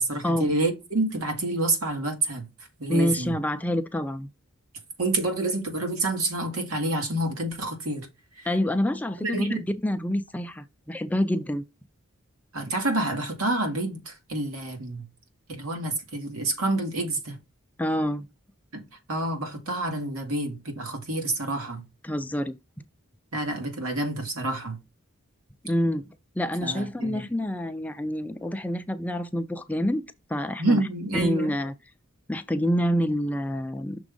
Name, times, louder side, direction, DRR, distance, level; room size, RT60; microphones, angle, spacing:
voice 1, 0.0-2.5 2.8-3.4 5.0-8.1 8.4-8.5 9.2-9.6 12.5-15.0 15.5-17.4 18.7-21.8 23.3-24.8 26.6-27.3 30.6-31.5, right 2 dB, 85° right, 2.1 m, -28 dB
voice 2, 2.9-4.3 8.5-11.6 17.8-18.2 22.0-22.6 25.6-26.1 26.4-30.0 30.3-30.8 31.2-31.7 32.3-34.0, equal, 5° left, 0.4 m, -27 dB
6.2 x 3.5 x 5.3 m
head